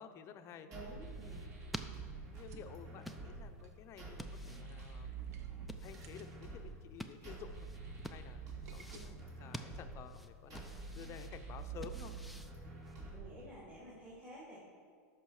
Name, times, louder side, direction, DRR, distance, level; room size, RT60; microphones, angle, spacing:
voice 1, 0.0-0.7 1.2-1.4 2.3-5.3 5.8-7.7 8.1-8.4 8.7-10.6 10.9-12.2, left 8 dB, 35° left, 8 dB, 0.7 m, -52 dB
voice 2, 0.6-1.5 8.9-9.1 13.1-14.6, right 1 dB, 20° right, -8 dB, 2.7 m, -52 dB
sound 1, 0.7-13.7, right 4 dB, 40° right, 2.9 m, -48 dB
sound 2, 0.9-13.2, equal, ahead, 0.5 m, -52 dB
sound 3, 2.3-9.0, right 6 dB, 80° right, 1.0 m, -63 dB
13.5 x 6.0 x 4.8 m, 2.1 s
supercardioid pair, 130°, 8 cm